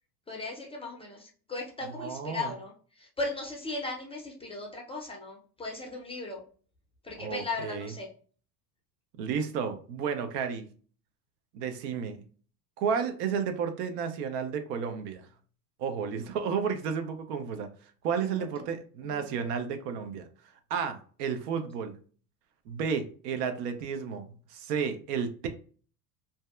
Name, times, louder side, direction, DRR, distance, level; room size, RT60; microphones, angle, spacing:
voice 1, 0.3-6.4 7.0-8.1 19.0-19.4, left 3 dB, 15° left, 0.4 m, -37 dB
voice 2, 2.0-2.5 7.2-7.9 9.2-10.7 11.5-12.2 12.8-15.3 15.8-17.7 18.0-20.3 20.7-22.0 22.7-25.5, right 6 dB, 75° right, 0.6 m, -32 dB
2.6 x 2.2 x 2.3 m
hypercardioid pair, 90°, 49 cm